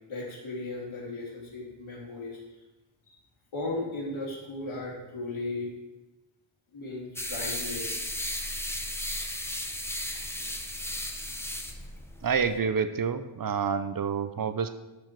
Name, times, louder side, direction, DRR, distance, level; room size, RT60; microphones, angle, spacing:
voice 1, 0.1-2.4 3.5-5.7 6.7-8.0 11.8-11.9, left 2 dB, 80° left, -4 dB, 2.9 m, -36 dB
sound 1, 7.2-12.6, left 1 dB, 5° left, 0.7 m, -35 dB
voice 2, 12.2-14.7, right 6 dB, 45° right, 10 dB, 0.6 m, -28 dB
13.0 x 4.9 x 4.6 m, 1.1 s
wide cardioid pair, 165°, 48 cm